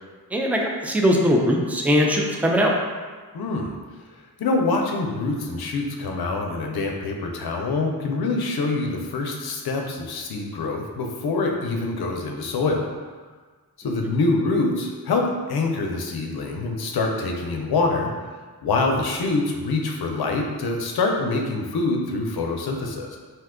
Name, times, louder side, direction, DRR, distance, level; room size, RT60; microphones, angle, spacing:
voice 1, 0.3-2.7, equal, 5° right, 0 dB, 0.4 m, -20 dB
voice 2, 3.3-3.8 4.4-12.9 13.8-15.2 15.5-18.1 18.6-23.2, left 3 dB, 75° left, 2 dB, 0.5 m, -25 dB
2.7 x 2.2 x 3.5 m, 1.4 s
cardioid pair, 60°, 38 cm